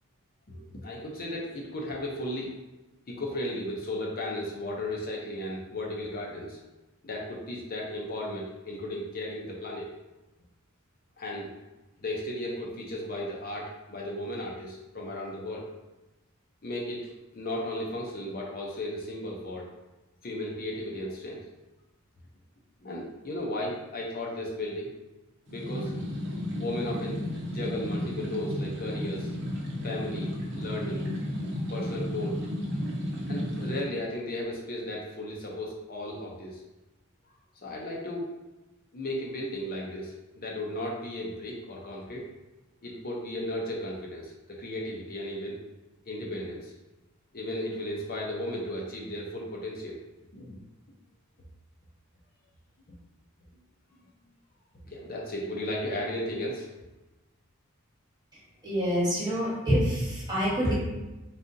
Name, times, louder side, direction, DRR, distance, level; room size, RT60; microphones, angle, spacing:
voice 1, 0.5-2.5 3.1-6.6 7.0-9.9 11.2-11.5 12.0-15.7 16.6-19.7 20.2-21.4 22.8-24.9 25.5-25.9 26.6-27.2 27.5-29.3 29.8-31.0 31.7-32.4 33.3-36.6 37.6-38.3 38.9-42.3 42.8-45.6 46.1-46.7 47.3-50.0 50.3-50.6 54.9-56.7, left 1 dB, 45° left, -3 dB, 0.6 m, -35 dB
sound 1, 25.5-33.8, left 1 dB, 55° right, 0.8 m, -33 dB
voice 2, 58.6-60.7, equal, 20° right, -6 dB, 1.2 m, -26 dB
4.0 x 3.7 x 2.7 m, 1.1 s
head